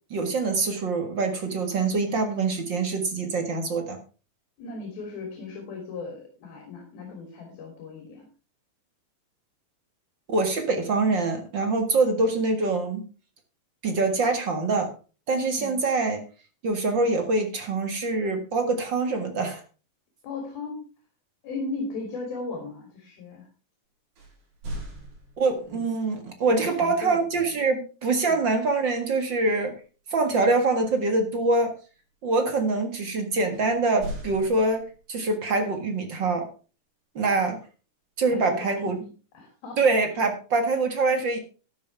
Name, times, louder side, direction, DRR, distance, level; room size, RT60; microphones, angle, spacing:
voice 1, 0.1-4.0 10.3-13.0 13.8-14.9 15.3-16.2 16.6-19.6 25.4-29.8 30.1-31.7 32.2-36.5 37.1-37.6 38.2-39.0 39.8-41.4, right 3 dB, 45° right, 6 dB, 1.7 m, -24 dB
voice 2, 4.6-8.3 15.6-15.8 20.2-20.8 21.4-23.5 25.7-25.9 26.5-27.2 28.3-28.4 38.3-39.1 39.3-39.8, left 3 dB, 80° left, 2 dB, 5.0 m, -36 dB
sound 1, 24.2-25.8 28.5-28.9 29.3-29.5 33.5-35.2, right 1 dB, 80° right, 6.6 m, -39 dB
13.0 x 11.0 x 3.5 m, 0.34 s
omnidirectional pair, 4.2 m